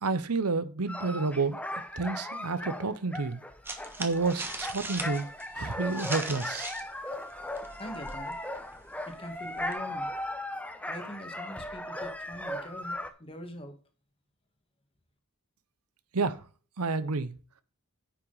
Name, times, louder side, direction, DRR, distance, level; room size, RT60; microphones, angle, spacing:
voice 1, 0.0-1.6 2.0-3.4 4.0-5.3 5.5-6.7 16.1-16.4 16.8-17.3, right 4 dB, 80° right, 0.9 m, -30 dB
sound 1, 0.9-13.1, left 1 dB, 5° left, 0.9 m, -37 dB
sound 2, 3.6-6.9 7.2-9.7, right 2 dB, 10° right, 1.3 m, -40 dB
voice 2, 7.8-8.4 9.0-10.1 10.9-13.8, equal, 25° left, 1.7 m, -43 dB
9.7 x 6.0 x 4.0 m
head